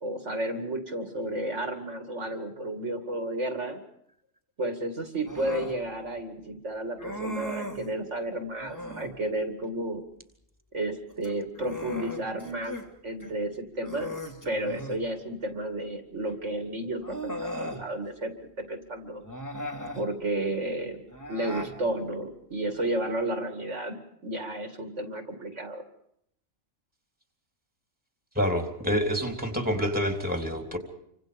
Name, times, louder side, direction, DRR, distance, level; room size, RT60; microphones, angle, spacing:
voice 1, 0.0-3.8 4.6-10.0 10.7-12.8 13.0-14.1 14.4-18.3 18.7-19.2 19.9-21.0 21.3-24.0 24.2-25.8, right 1 dB, 55° right, 6 dB, 2.6 m, -32 dB
Human voice, 5.3-5.8 7.0-7.9 8.6-9.2 11.1-12.9 13.2-13.3 13.8-15.0 16.2-16.3 17.0-17.8 19.2-20.1 21.1-21.8, equal, 10° left, 3.4 m, -37 dB
voice 2, 28.4-30.8, equal, 5° right, 5 dB, 3.4 m, -27 dB
28.5 x 25.5 x 5.2 m, 0.73 s
omnidirectional pair, 1.5 m